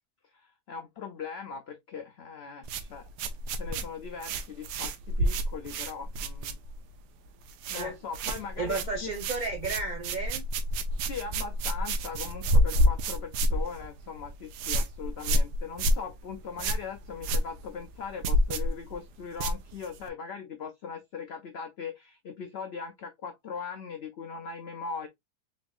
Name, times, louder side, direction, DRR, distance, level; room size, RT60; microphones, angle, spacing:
voice 1, 0.3-3.1 3.5-6.6 7.7-9.1 11.1-25.1, left 6 dB, 85° left, 0.5 m, -40 dB
sound 1, 2.6-7.0 7.3-7.9 8.1-20.1, equal, 80° right, 1.2 m, -29 dB
voice 2, 8.6-10.4, right 3 dB, 40° right, 0.6 m, -33 dB
3.9 x 3.4 x 2.4 m
omnidirectional pair, 1.8 m